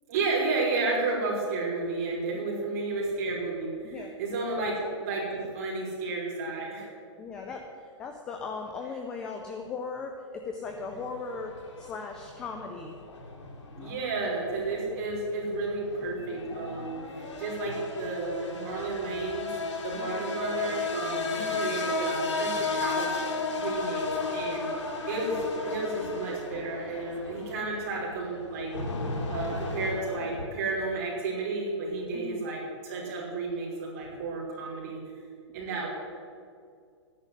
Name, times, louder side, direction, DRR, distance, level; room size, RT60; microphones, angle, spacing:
voice 1, 0.1-4.7 5.0-6.9 13.8-19.5 19.8-23.1 23.6-24.1 24.3-24.7 25.1-28.8 29.3-35.0 35.5-35.9, right 3 dB, 30° right, -4 dB, 5.3 m, -32 dB
voice 2, 2.3-2.7 3.8-4.1 4.6-4.8 7.2-12.9 13.7-13.9 19.9-20.3 32.1-32.4, left 4 dB, 5° left, 3 dB, 0.3 m, -38 dB
sound 1, 10.7-30.5, left 3 dB, 80° left, 3.7 m, -35 dB
12.5 x 10.5 x 9.9 m, 2.2 s
hypercardioid pair, 175°, 15 cm